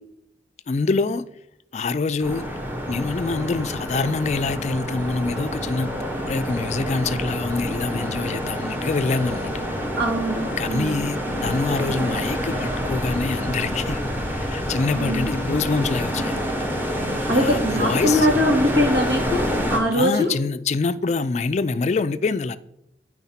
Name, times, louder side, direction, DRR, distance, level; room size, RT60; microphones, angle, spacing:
voice 1, 0.7-1.2 1.7-2.6 2.9-5.9 6.3-9.5 10.6-14.0 14.3-16.5 17.3-18.3 19.9-22.6, left 4 dB, 40° left, 0.3 m, -25 dB
sound 1, 2.2-19.8, equal, 10° right, 1.1 m, -27 dB
voice 2, 10.0-11.1 14.9-15.3 17.3-20.3, equal, 85° right, 2.2 m, -22 dB
9.3 x 4.6 x 5.7 m
head